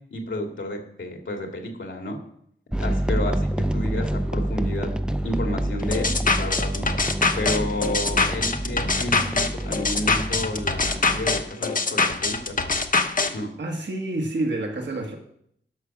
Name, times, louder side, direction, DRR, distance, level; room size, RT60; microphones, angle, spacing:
voice 1, 0.1-2.2 2.8-4.9 5.2-6.9 7.4-12.5 13.3-13.5, left 1 dB, 80° left, 2 dB, 2.2 m, -31 dB
sound 1, 2.7-11.4, right 1 dB, 5° right, 0.5 m, -28 dB
sound 2, 5.9-13.3, left 3 dB, 45° left, 0.9 m, -23 dB
voice 2, 13.6-15.2, right 2 dB, 65° right, 2 dB, 1.6 m, -28 dB
11.5 x 6.2 x 5.9 m, 0.70 s
wide cardioid pair, 80°, 20 cm